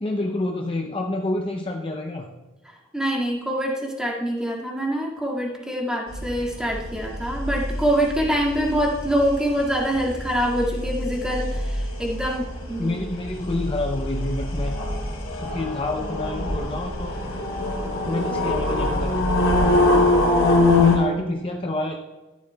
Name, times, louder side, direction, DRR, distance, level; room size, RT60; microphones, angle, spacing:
voice 1, 0.0-2.3 12.8-14.8 15.4-17.2 18.1-19.2 20.8-21.9, left 2 dB, 25° left, 2 dB, 0.6 m, -28 dB
voice 2, 2.7-13.0, equal, 5° right, -2 dB, 1.9 m, -25 dB
sound 1, 6.1-21.0, left 2 dB, 75° left, 2.5 m, -24 dB
13.0 x 11.5 x 2.2 m, 1.2 s
head